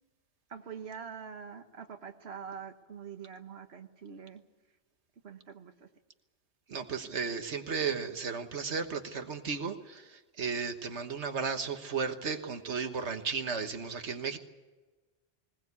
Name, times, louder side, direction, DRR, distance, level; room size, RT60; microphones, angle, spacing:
voice 1, 0.5-4.4 5.2-5.9, right 7 dB, 70° right, 5 dB, 1.6 m, -45 dB
voice 2, 6.7-14.4, right 5 dB, 85° right, 7 dB, 1.6 m, -34 dB
20.5 x 19.0 x 8.3 m, 1.2 s
omnidirectional pair, 1.1 m